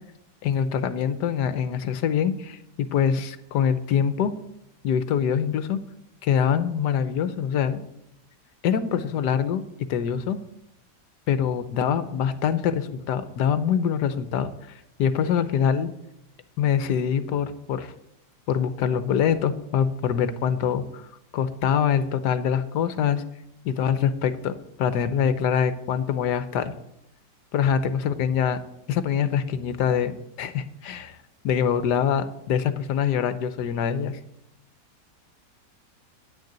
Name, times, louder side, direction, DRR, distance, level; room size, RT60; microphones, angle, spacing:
voice 1, 0.4-4.3 4.8-5.8 6.2-7.8 8.6-9.6 9.9-10.4 11.3-14.5 15.0-15.9 16.6-17.9 18.5-21.1 21.3-23.2 23.6-26.7 27.5-28.6 28.9-31.2 31.4-34.1, left 8 dB, 75° left, 12 dB, 1.4 m, -24 dB
9.5 x 6.6 x 8.6 m, 0.81 s
omnidirectional pair, 1.8 m